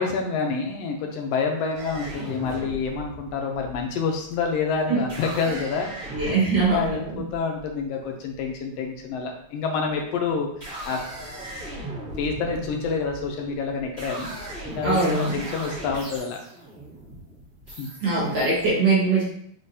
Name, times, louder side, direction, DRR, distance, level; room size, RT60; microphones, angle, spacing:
voice 1, 0.0-5.9 6.1-11.0 12.2-14.3 14.6-16.4 17.8-17.9, left 5 dB, 75° left, 2 dB, 1.5 m, -28 dB
sound 1, 1.7-8.5 9.5-10.0 10.4-18.7, right 1 dB, 30° right, 2.0 m, -38 dB
voice 2, 6.1-7.2 14.8-15.4 18.0-19.2, right 3 dB, 55° right, -7 dB, 2.4 m, -22 dB
4.9 x 3.7 x 2.7 m, 0.67 s
omnidirectional pair, 3.4 m